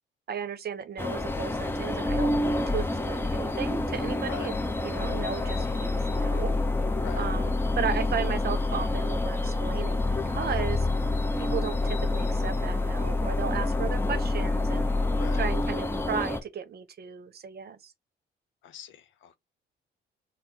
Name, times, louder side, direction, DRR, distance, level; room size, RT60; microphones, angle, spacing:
voice 1, 0.3-4.6 4.8-6.5 7.2-10.9 11.4-14.9 15.3-17.9, right 8 dB, 55° right, 0.7 m, -35 dB
sound 1, 1.0-16.4, left 2 dB, 10° left, 0.6 m, -27 dB
voice 2, 18.6-19.4, left 10 dB, 75° left, 0.7 m, -42 dB
4.3 x 2.0 x 3.6 m
cardioid pair, 90°, 20 cm